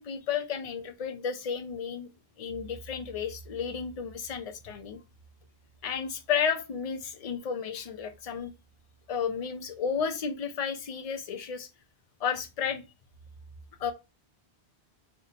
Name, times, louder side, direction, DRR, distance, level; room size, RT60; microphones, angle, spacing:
voice 1, 0.0-2.1 2.4-5.0 5.8-8.5 9.1-11.7 12.2-12.8 13.8-13.9, left 7 dB, 50° left, 0.5 m, -32 dB
2.7 x 2.2 x 3.7 m
omnidirectional pair, 1.1 m